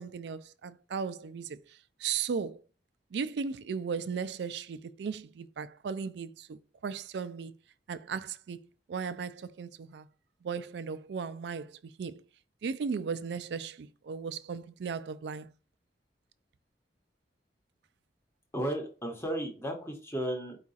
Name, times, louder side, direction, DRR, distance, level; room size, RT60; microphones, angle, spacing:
voice 1, 0.0-1.6 2.0-2.6 3.1-7.6 7.9-10.1 10.4-12.2 12.6-15.5, right 6 dB, 75° right, 0.4 m, -36 dB
voice 2, 18.5-20.6, right 1 dB, 15° left, 1.0 m, -34 dB
4.8 x 2.4 x 4.0 m
head